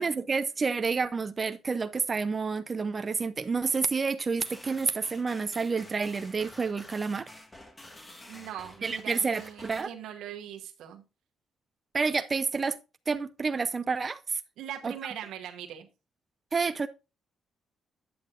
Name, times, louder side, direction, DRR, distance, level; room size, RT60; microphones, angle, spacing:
voice 1, 0.0-7.3 8.8-9.9 11.9-12.8 13.1-14.4 14.8-14.9 16.5-16.9, right 4 dB, 35° right, 0.5 m, -29 dB
sound 1, 4.4-9.8, left 1 dB, 20° left, 1.7 m, -49 dB
voice 2, 8.3-11.0 14.6-15.9, right 10 dB, 85° right, 1.0 m, -41 dB
9.3 x 7.7 x 2.5 m
cardioid pair, 90°, 0 cm